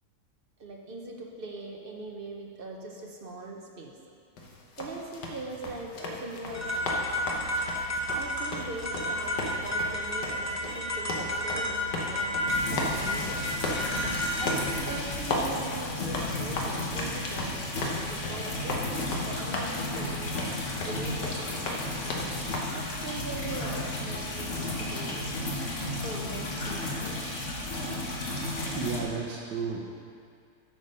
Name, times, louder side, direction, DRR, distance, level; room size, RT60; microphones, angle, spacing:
voice 1, 0.6-4.0 4.8-7.1 8.1-13.5 14.4-20.3 20.8-21.9 22.7-25.3 26.0-27.4, right 2 dB, 50° right, 0 dB, 0.7 m, -41 dB
sound 1, 4.4-22.6, left 2 dB, 80° left, 1.6 m, -36 dB
sound 2, 6.5-14.7, equal, 20° left, 0.5 m, -31 dB
sound 3, 12.5-29.0, left 2 dB, 50° left, 1.5 m, -33 dB
voice 2, 28.7-29.8, right 5 dB, 80° right, -2 dB, 1.4 m, -32 dB
8.3 x 6.8 x 5.4 m, 2.3 s
omnidirectional pair, 1.8 m